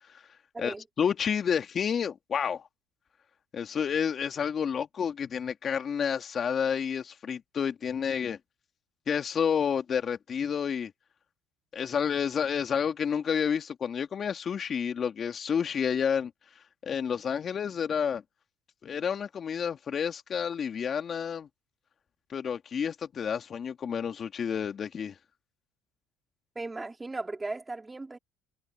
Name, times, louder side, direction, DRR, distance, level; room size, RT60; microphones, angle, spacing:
voice 1, 0.6-2.7 3.5-8.4 9.1-10.9 11.7-16.3 16.8-18.2 18.8-21.5 22.3-25.1, left 7 dB, 40° left, 2.4 m, -30 dB
voice 2, 26.6-28.2, right 3 dB, 15° right, 3.9 m, -37 dB
supercardioid pair, 85°, 0 cm